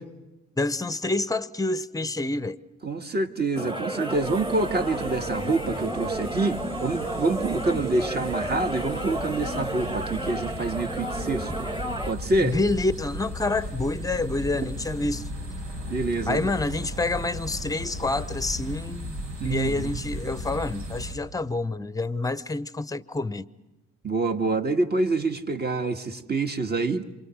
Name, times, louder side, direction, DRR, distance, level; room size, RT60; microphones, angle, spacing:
voice 1, 0.6-2.6 12.4-15.3 16.3-23.5, left 2 dB, 10° left, 0.8 m, -28 dB
voice 2, 2.8-11.6 12.1-12.6 14.6-14.7 15.8-16.5 19.4-20.0 24.0-27.0, right 3 dB, 35° right, 1.8 m, -27 dB
sound 1, 3.6-12.1, right 1 dB, 15° right, 1.9 m, -32 dB
sound 2, 4.1-21.1, equal, 85° right, 5.0 m, -36 dB
27.5 x 25.5 x 6.4 m
cardioid pair, 90°, 30 cm